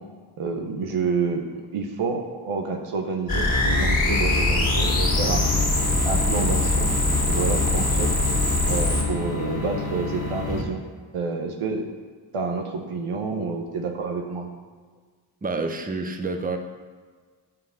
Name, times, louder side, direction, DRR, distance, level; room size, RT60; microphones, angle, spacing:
voice 1, 0.4-1.4 1.7-5.4 6.0-6.9 7.3-8.1 8.7-10.8 11.1-11.9 12.3-14.5, right 4 dB, 85° right, 3 dB, 1.0 m, -28 dB
sound 1, 3.3-9.0, left 2 dB, 15° left, 2.2 m, -22 dB
sound 2, 4.5-10.6, left 4 dB, 40° left, 2.4 m, -31 dB
voice 2, 15.4-16.6, right 3 dB, 15° right, 6 dB, 0.8 m, -28 dB
5.9 x 4.9 x 6.3 m, 1.5 s
cardioid pair, 45°, 50 cm